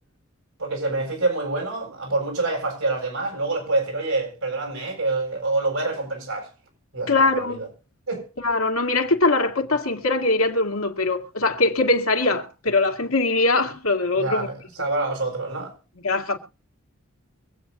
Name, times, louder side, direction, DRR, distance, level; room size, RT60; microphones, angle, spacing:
voice 1, 0.6-6.5 6.9-7.7 8.1-8.2 14.1-15.7, right 2 dB, 80° right, 7.8 m, -26 dB
voice 2, 7.1-7.6 8.4-14.5 16.0-16.4, left 3 dB, 80° left, 2.3 m, -22 dB
24.5 x 8.9 x 2.8 m
head